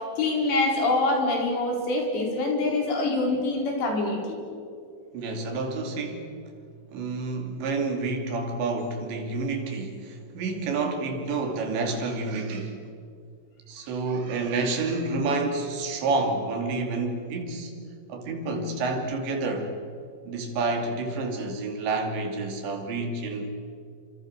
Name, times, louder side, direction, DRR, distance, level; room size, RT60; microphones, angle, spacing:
voice 1, 0.0-4.4, left 2 dB, 70° left, 1 dB, 6.8 m, -25 dB
voice 2, 5.1-6.3 6.9-12.9 13.7-17.7 18.1-19.7 20.3-23.5, right 3 dB, 75° right, 3 dB, 5.1 m, -29 dB
28.5 x 26.5 x 6.7 m, 2.3 s
omnidirectional pair, 5.2 m